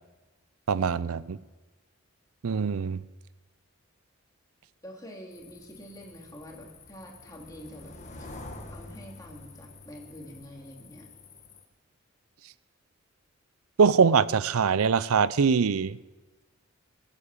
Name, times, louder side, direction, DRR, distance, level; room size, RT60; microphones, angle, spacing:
voice 1, 0.7-1.4 2.4-3.0 13.8-16.0, right 5 dB, 90° right, 18 dB, 0.5 m, -23 dB
voice 2, 4.8-8.3 8.7-11.1, equal, 15° left, -1 dB, 2.6 m, -46 dB
sound 1, 5.3-11.6, left 2 dB, 35° left, 1.4 m, -47 dB
20.5 x 8.5 x 7.3 m, 1.2 s
head